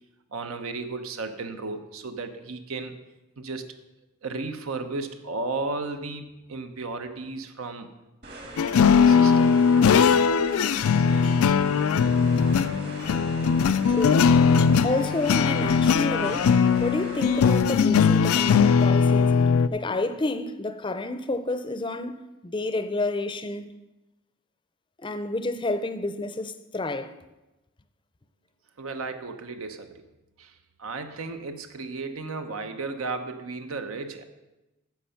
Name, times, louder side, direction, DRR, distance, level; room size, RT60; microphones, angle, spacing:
voice 1, 0.3-2.9 3.4-3.6 4.2-7.9 9.0-9.5 28.8-30.0 30.4-30.5 30.8-34.2, right 3 dB, 80° right, 0.9 m, -34 dB
sound 1, 8.2-17.6, right 1 dB, 50° right, 1.7 m, -41 dB
sound 2, 8.6-19.7, left 6 dB, 85° left, 0.4 m, -20 dB
voice 2, 13.9-14.4 14.8-19.4 19.7-23.7 25.0-27.1, left 2 dB, 20° left, 0.5 m, -30 dB
10.5 x 6.7 x 5.7 m
head